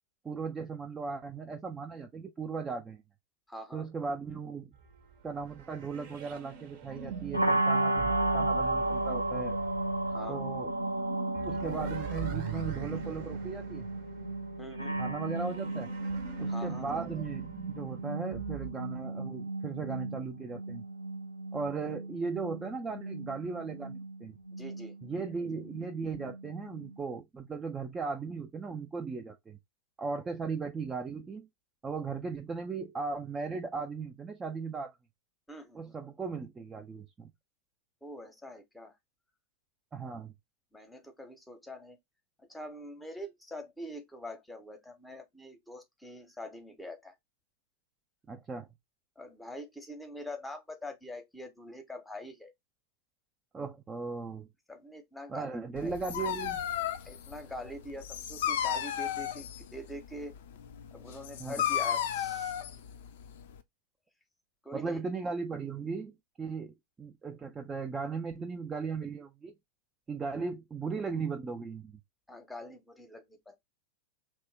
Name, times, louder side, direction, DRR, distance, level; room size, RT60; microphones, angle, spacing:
voice 1, 0.2-3.0 3.7-4.7 5.2-9.6 10.3-10.7 11.4-13.8 15.0-15.9 16.4-20.8 21.5-24.4 25.0-29.6 30.0-31.5 31.8-35.0 35.7-37.3 39.9-40.3 48.3-48.7 53.5-54.5 55.3-56.6 61.4-61.6 64.7-69.5 70.1-72.0, right 4 dB, 15° right, 0.4 m, -37 dB
voice 2, 3.5-3.8 10.1-10.4 14.6-15.0 16.5-16.9 24.6-24.9 35.5-36.0 38.0-38.9 40.7-42.0 42.5-47.1 49.2-52.5 54.7-55.9 57.0-60.3 60.9-62.5 64.6-65.0 72.3-73.6, left 1 dB, 5° left, 0.8 m, -44 dB
sound 1, 4.7-18.7, right 9 dB, 50° right, 0.7 m, -43 dB
sound 2, 7.3-27.2, right 2 dB, 90° right, 0.5 m, -34 dB
Dog, 55.7-63.6, left 10 dB, 55° left, 0.4 m, -34 dB
3.0 x 2.1 x 3.3 m
figure-of-eight pair, 90°, 0 cm